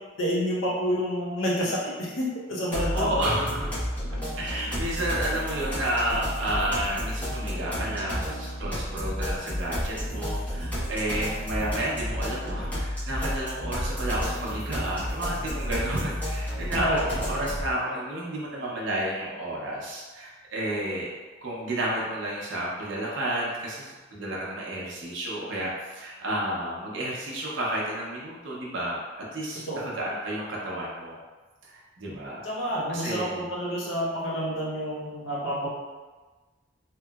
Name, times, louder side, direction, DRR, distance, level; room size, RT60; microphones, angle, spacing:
voice 1, 0.2-3.6 4.1-4.2 16.7-17.0 29.7-29.8 32.4-35.7, equal, 85° left, -5 dB, 0.8 m, -29 dB
sound 1, 2.7-17.7, equal, 10° left, 0.9 m, -31 dB
voice 2, 2.7-3.7 4.4-21.1 21.4-29.0 29.3-31.2 31.6-32.4 32.9-33.5, right 1 dB, 70° right, -5 dB, 0.7 m, -31 dB
3.0 x 2.8 x 2.3 m, 1.3 s
head